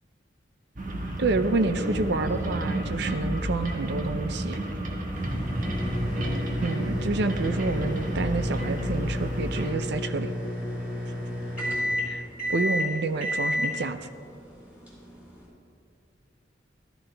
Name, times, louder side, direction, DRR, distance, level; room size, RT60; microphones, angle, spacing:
sound 1, 0.8-9.7, right 1 dB, 45° right, 1.5 m, -31 dB
voice 1, 1.2-4.6 6.6-10.3 12.0-12.2 12.5-14.0, right 3 dB, 65° right, 11 dB, 0.5 m, -28 dB
sound 2, 5.1-15.5, left 1 dB, 10° right, 3.7 m, -31 dB
15.0 x 12.5 x 3.4 m, 2.3 s
head